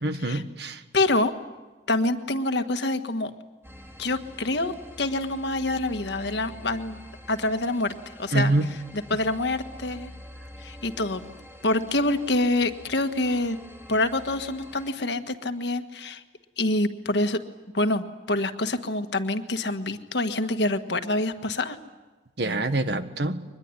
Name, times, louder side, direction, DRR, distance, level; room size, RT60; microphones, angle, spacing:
voice 1, 0.0-0.8 8.3-8.7 22.4-23.4, right 2 dB, 65° right, 9 dB, 1.5 m, -25 dB
voice 2, 0.9-1.3 1.9-3.3 4.0-4.7 5.0-7.0 7.3-7.9 8.2-8.5 8.9-10.1 10.6-11.2 11.6-13.6 13.9-16.2 16.6-17.4 17.7-21.8, left 2 dB, 70° left, 8 dB, 1.5 m, -26 dB
sound 1, 3.6-14.9, left 1 dB, 15° right, 2.8 m, -46 dB
23.5 x 21.0 x 9.7 m, 1.2 s
head